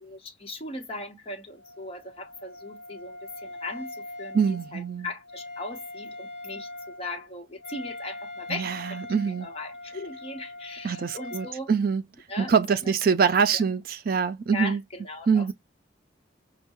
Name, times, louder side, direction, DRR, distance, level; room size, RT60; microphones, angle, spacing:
voice 1, 0.0-11.7 12.3-12.9 13.5-13.6 14.5-15.5, left 2 dB, 30° left, 0.9 m, -38 dB
Wind instrument woodwind instrument, 1.6-11.6, left 2 dB, 15° right, 2.1 m, -42 dB
voice 2, 4.3-5.1 8.5-9.5 10.8-12.0 12.4-14.8 15.3-15.5, right 6 dB, 50° right, 0.4 m, -24 dB
5.5 x 2.2 x 2.9 m
head